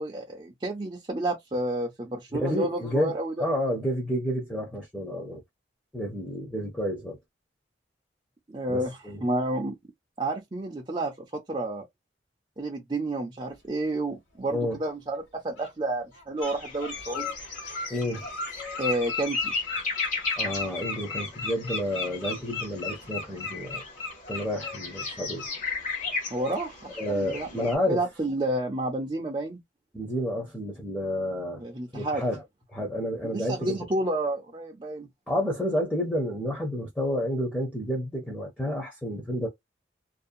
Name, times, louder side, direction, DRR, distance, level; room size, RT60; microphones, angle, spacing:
voice 1, 0.0-3.3 8.5-9.7 10.2-11.8 12.6-17.4 18.8-19.5 26.3-29.6 31.6-32.2 33.2-35.1, right 1 dB, 25° right, 0.5 m, -30 dB
voice 2, 2.4-5.4 5.9-7.2 8.7-9.2 14.5-14.8 17.9-18.3 20.4-23.8 24.3-25.5 27.0-28.0 29.9-31.6 31.9-32.4 32.7-33.8 35.3-39.5, equal, 5° left, 0.7 m, -30 dB
Bird, 14.7-14.8 15.6-15.7 16.1-16.5 16.8-25.5 25.8-26.0 26.4-26.6, left 4 dB, 90° left, 1.4 m, -35 dB
sound 1, 16.4-27.8, left 4 dB, 40° left, 1.0 m, -36 dB
2.6 x 2.1 x 2.4 m
head